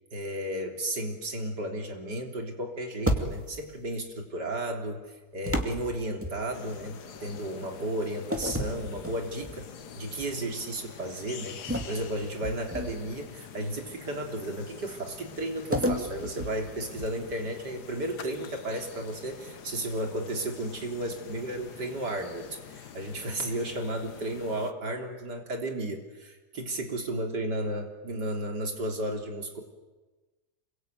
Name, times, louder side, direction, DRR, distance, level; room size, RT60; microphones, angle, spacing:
voice 1, 0.1-9.7 9.9-29.6, right 1 dB, 85° right, 3 dB, 4.0 m, -33 dB
sound 1, 3.0-3.7 5.5-6.8 8.3-9.6 10.1-10.4 11.7-13.2 15.7-17.4, equal, 10° right, 2.3 m, -32 dB
sound 2, 6.5-24.7, left 7 dB, 75° left, 1.8 m, -46 dB
27.0 x 23.0 x 9.2 m, 1.2 s
omnidirectional pair, 1.8 m